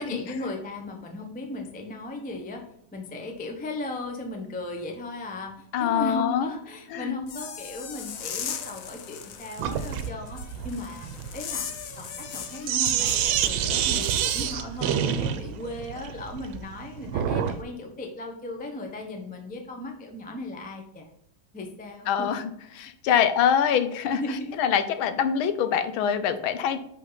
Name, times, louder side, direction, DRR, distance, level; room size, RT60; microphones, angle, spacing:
voice 1, 0.0-11.1 11.3-11.7 12.0-21.1 21.5-22.3 23.0-23.3 24.2-24.5, left 2 dB, 15° left, 3 dB, 0.3 m, -36 dB
voice 2, 5.7-6.5 6.9-7.2 22.1-26.8, left 8 dB, 85° left, 10 dB, 1.5 m, -24 dB
sound 1, 7.2-14.5, left 8 dB, 65° left, 0.8 m, -38 dB
Sink (filling or washing), 9.6-17.6, right 9 dB, 80° right, 1.4 m, -28 dB
6.2 x 5.5 x 4.0 m, 0.78 s
omnidirectional pair, 2.2 m